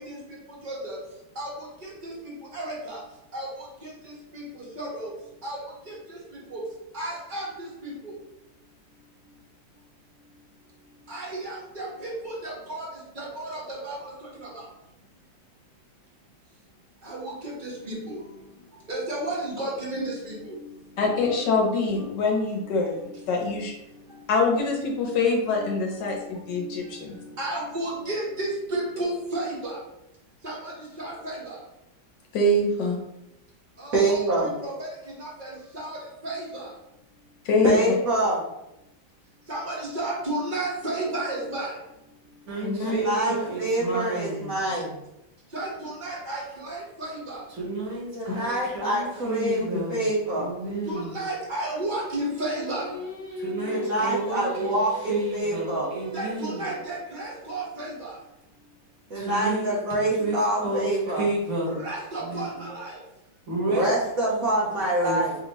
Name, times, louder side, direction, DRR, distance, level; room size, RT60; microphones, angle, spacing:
voice 1, 0.6-1.0 1.4-1.5 1.8-2.1 2.5-3.0 3.3-3.5 4.3-4.4 4.8-5.1 5.4-5.6 6.5-6.6 6.9-7.5 7.8-8.1 11.1-12.8 13.2-14.0 17.1-17.3 17.6-18.2 18.9-20.5 25.6-25.7 27.4-29.8 30.4-30.7 31.0-31.5 33.8-34.9 35.2-35.5 35.7-36.0 36.2-36.6 39.5-41.7 45.5-47.4 50.9-52.9 56.1-58.1 61.8-62.9, right 1 dB, 30° right, -4 dB, 1.1 m, -32 dB
voice 2, 21.0-23.7 24.3-27.2 32.3-33.0 37.4-37.8 42.6-43.0, left 3 dB, 70° left, 0 dB, 1.3 m, -24 dB
voice 3, 33.9-34.5 37.6-38.4 42.8-44.9 48.1-50.5 53.7-55.9 59.1-61.2 63.7-65.3, right 1 dB, 55° right, -5 dB, 1.1 m, -25 dB
voice 4, 42.5-44.5 47.5-51.2 53.4-56.7 59.1-61.8 62.2-62.6 63.5-63.9 64.3-65.4, right 2 dB, 75° right, -5 dB, 2.3 m, -31 dB
Singing, 52.1-57.2, right 1 dB, 10° left, 1.1 m, -38 dB
5.0 x 2.8 x 2.9 m, 0.89 s
omnidirectional pair, 2.1 m